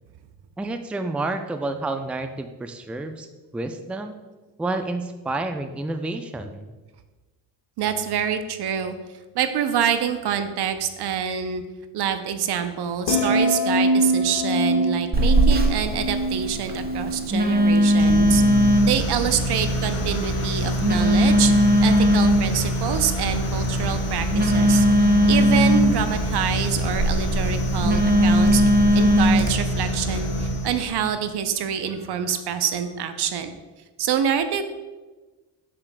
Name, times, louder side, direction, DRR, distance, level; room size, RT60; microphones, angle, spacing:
voice 1, 0.6-3.3 3.5-4.1 4.6-6.7, right 2 dB, 5° right, 7 dB, 0.4 m, -29 dB
voice 2, 7.8-9.0 9.3-11.6 11.9-18.4 18.8-21.5 21.8-24.9 25.3-28.6 28.9-33.6 34.0-34.6, right 8 dB, 60° right, 9 dB, 0.7 m, -26 dB
sound 1, 13.1-19.4 19.7-20.0, right 1 dB, 70° left, 1.5 m, -25 dB
Telephone, 15.1-29.5, equal, 20° right, 1.0 m, -20 dB
sound 2, 18.0-31.0, equal, 35° left, 1.6 m, -26 dB
7.2 x 6.7 x 2.2 m, 1.2 s
supercardioid pair, 55°, 44 cm